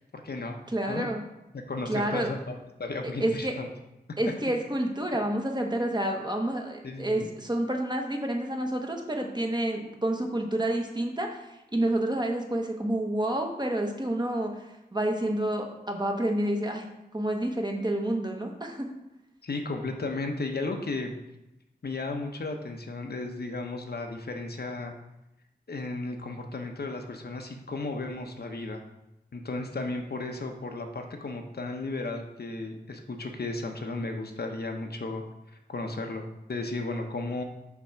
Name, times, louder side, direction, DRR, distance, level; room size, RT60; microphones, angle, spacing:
voice 1, 0.1-0.6 0.9-1.1 1.5-3.7 6.8-7.3 19.4-21.1 21.8-24.9 25.7-28.8 29.3-35.2 35.7-37.4, left 2 dB, 70° left, 4 dB, 0.9 m, -34 dB
voice 2, 0.7-1.2 1.9-2.3 3.2-3.5 4.2-14.7 14.9-16.9 17.1-18.9, right 1 dB, 25° right, 2 dB, 1.1 m, -29 dB
5.9 x 3.5 x 5.6 m, 0.92 s
wide cardioid pair, 60°, 17 cm